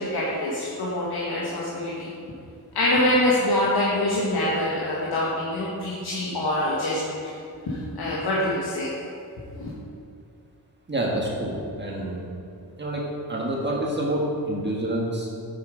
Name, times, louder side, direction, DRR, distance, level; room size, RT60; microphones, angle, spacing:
voice 1, 0.0-2.1 2.7-7.4 7.7-8.9 9.3-9.7, left 1 dB, 75° left, -6 dB, 1.7 m, -25 dB
voice 2, 10.9-12.3 12.8-13.0 13.3-15.3, right 1 dB, 25° right, -3 dB, 1.6 m, -27 dB
8.6 x 7.7 x 5.0 m, 2.4 s
wide cardioid pair, 125°, 39 cm